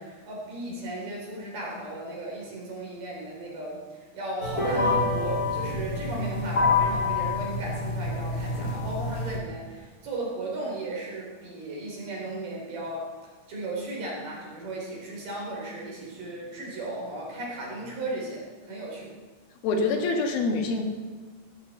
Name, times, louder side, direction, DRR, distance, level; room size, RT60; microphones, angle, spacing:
voice 1, 0.0-13.1 13.5-19.1, right 2 dB, 60° right, -3 dB, 5.5 m, -36 dB
sound 1, 4.4-9.4, left 3 dB, 25° left, 2.9 m, -27 dB
voice 2, 19.6-20.8, left 3 dB, 75° left, 3 dB, 3.3 m, -25 dB
16.5 x 13.0 x 4.4 m, 1.4 s
omnidirectional pair, 4.4 m